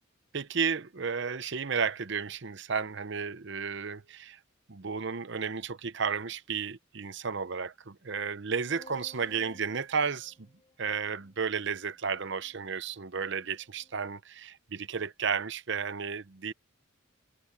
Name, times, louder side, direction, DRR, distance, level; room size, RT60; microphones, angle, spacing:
voice 1, 0.3-4.4 4.7-10.3 10.8-16.5, right 6 dB, 55° right, 0.7 m, -33 dB
sound 1, 8.7-14.0, left 2 dB, 25° left, 1.8 m, -58 dB
head